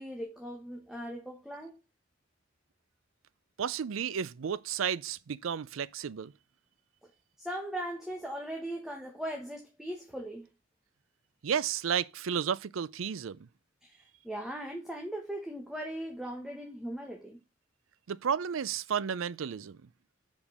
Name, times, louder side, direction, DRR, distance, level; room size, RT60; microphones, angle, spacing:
voice 1, 0.0-1.7 7.4-10.5 13.8-17.4, right 1 dB, ahead, 1.1 m, -39 dB
voice 2, 3.6-6.3 11.4-13.5 18.1-19.9, right 7 dB, 90° right, 0.5 m, -32 dB
5.3 x 5.1 x 6.4 m
head